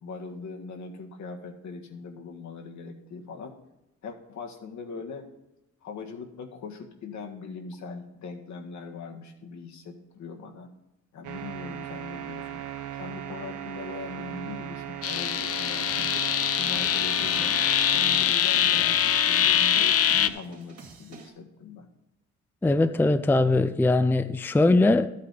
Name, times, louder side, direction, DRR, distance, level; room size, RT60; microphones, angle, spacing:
voice 1, 0.0-3.5 4.0-5.3 5.8-10.7 11.1-12.6 12.9-16.1 16.6-17.6 17.9-21.9, left 4 dB, 70° left, 3 dB, 1.6 m, -40 dB
sound 1, 11.2-18.3, right 11 dB, 80° right, 1.0 m, -38 dB
sound 2, 15.0-20.3, left 9 dB, 50° left, 0.6 m, -23 dB
sound 3, 15.8-21.3, right 5 dB, 55° right, 2.3 m, -47 dB
voice 2, 22.6-25.1, left 2 dB, 5° left, 10 dB, 0.4 m, -21 dB
12.5 x 8.4 x 4.1 m, 0.92 s
cardioid pair, 90°, 30 cm